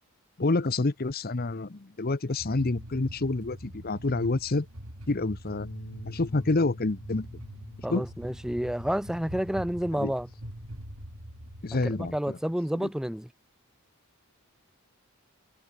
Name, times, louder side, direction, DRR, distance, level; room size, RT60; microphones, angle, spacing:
voice 1, 0.4-4.7 5.1-5.7 6.1-7.3 7.9-8.0 9.9-10.1 11.6-12.4, left 2 dB, 45° left, 0.8 m, -28 dB
sound 1, 2.4-12.2, equal, 80° right, 6.8 m, -44 dB
sound 2, 5.6-11.9, left 1 dB, 65° left, 4.4 m, -48 dB
voice 2, 7.8-10.3 12.0-13.3, equal, ahead, 0.3 m, -30 dB
head